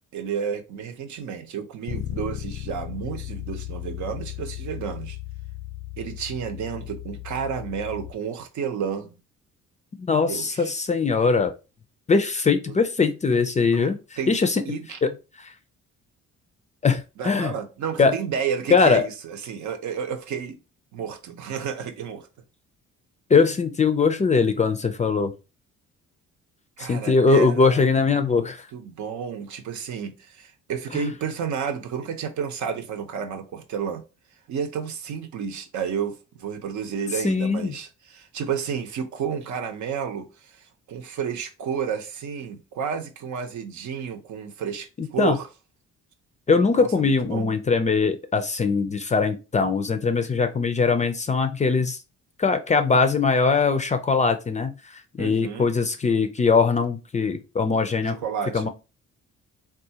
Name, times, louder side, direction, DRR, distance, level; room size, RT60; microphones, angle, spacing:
voice 1, 0.1-5.2 6.0-9.2 10.1-10.7 12.7-12.8 13.3-13.9 14.2-14.3 14.7-15.0 17.2-20.6 20.9-22.3 26.8-27.9 28.1-28.5 28.7-34.0 34.5-45.5 46.7-47.5 55.2-55.7 58.0-58.6, right 7 dB, 70° right, 0.7 m, -31 dB
Bass guitar, 1.9-8.1, left 14 dB, 90° left, 0.6 m, -35 dB
voice 2, 10.0-11.5 12.1-14.0 14.3-14.6 15.0-15.1 15.4-15.5 16.8-17.5 18.0-18.1 18.7-19.0 23.3-25.3 26.8-28.6 30.9-31.0 37.2-37.7 45.0-45.4 46.5-52.0 52.4-58.2 58.5-58.7, left 4 dB, 25° left, 0.4 m, -21 dB
3.6 x 2.4 x 2.8 m
cardioid pair, 90°, 30 cm